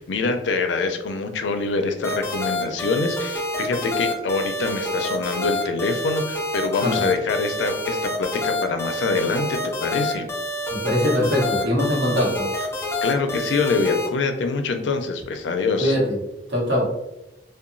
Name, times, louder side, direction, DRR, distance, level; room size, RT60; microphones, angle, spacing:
voice 1, 0.0-10.3 13.0-16.0, left 4 dB, 90° left, 6 dB, 0.4 m, -25 dB
sound 1, 2.0-14.1, left 1 dB, 15° left, 0.4 m, -28 dB
voice 2, 6.8-7.1 10.7-12.5 15.8-16.2 16.5-16.9, left 1 dB, 75° right, -3 dB, 0.9 m, -22 dB
2.8 x 2.2 x 2.5 m, 0.90 s
head